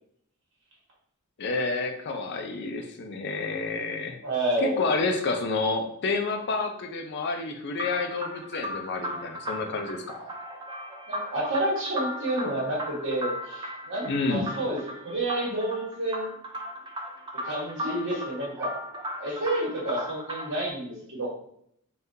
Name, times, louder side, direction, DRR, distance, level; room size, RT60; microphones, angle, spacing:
voice 1, 1.4-4.2 4.6-10.2 14.0-14.5, left 3 dB, 55° left, 5 dB, 0.4 m, -29 dB
voice 2, 4.2-4.8 11.1-16.3 17.4-18.7 19.2-21.3, right 1 dB, 60° right, -4 dB, 1.3 m, -29 dB
sound 1, 7.7-20.7, equal, 20° right, 0.4 m, -37 dB
3.5 x 2.3 x 2.7 m, 0.69 s
head